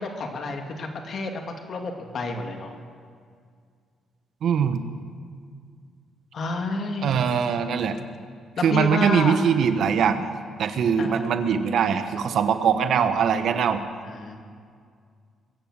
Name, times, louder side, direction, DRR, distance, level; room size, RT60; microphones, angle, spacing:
voice 1, 0.0-1.4 1.7-2.7 6.3-7.3 8.6-9.4 11.0-11.3 14.0-14.4, left 3 dB, 55° left, 4 dB, 2.3 m, -30 dB
voice 2, 4.4-4.8 7.0-8.0 8.6-10.3 10.6-13.8, right 7 dB, 65° right, 9 dB, 1.1 m, -22 dB
22.0 x 8.8 x 7.5 m, 2.1 s
cardioid pair, 90°, 0 cm